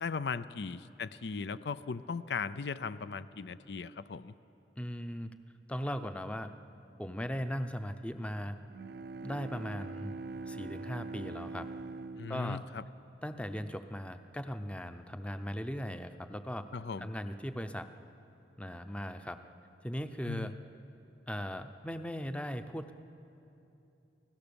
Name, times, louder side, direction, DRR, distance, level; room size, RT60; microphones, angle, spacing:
voice 1, 0.0-4.3 12.2-12.8 16.7-17.1 20.2-20.5, left 5 dB, 65° left, 14 dB, 0.5 m, -38 dB
voice 2, 4.8-5.3 5.7-6.5 7.0-8.6 9.2-10.2 10.4-11.7 12.3-12.6 13.2-16.7 17.0-17.9 18.6-19.4 19.8-20.5 21.3-22.9, equal, 5° left, 9 dB, 0.7 m, -38 dB
Bowed string instrument, 8.7-13.7, right 3 dB, 60° right, 0.4 m, -44 dB
30.0 x 16.5 x 7.0 m, 2.8 s
head